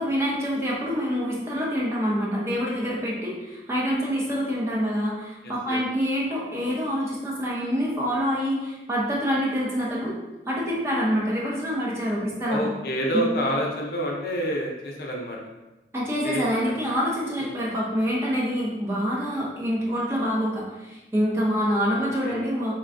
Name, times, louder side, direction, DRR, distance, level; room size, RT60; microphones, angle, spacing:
voice 1, 0.0-10.2 10.5-12.7 13.1-13.3 15.9-22.7, equal, 15° right, -5 dB, 0.6 m, -26 dB
voice 2, 5.4-5.8 12.5-15.4 16.2-16.8 17.4-17.5 21.9-22.4, equal, 60° left, -1 dB, 0.5 m, -28 dB
4.2 x 2.2 x 2.5 m, 1.0 s
head